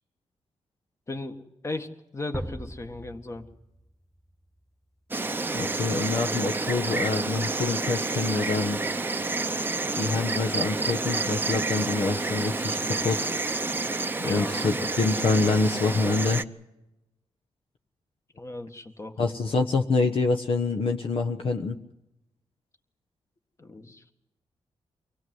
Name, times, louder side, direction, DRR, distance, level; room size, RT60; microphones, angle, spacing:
voice 1, 1.1-3.5 14.2-14.8 18.3-19.2 23.6-24.1, left 2 dB, 25° left, 6 dB, 1.8 m, -37 dB
sound 1, 2.3-5.3, right 1 dB, ahead, 1.6 m, -41 dB
Insect, 5.1-16.4, right 3 dB, 20° right, 0.8 m, -29 dB
voice 2, 5.5-8.8 9.9-13.3 14.2-16.4 19.2-21.8, left 3 dB, 60° left, 5 dB, 1.2 m, -26 dB
24.5 x 17.0 x 7.9 m, 0.92 s
cardioid pair, 90°, 10 cm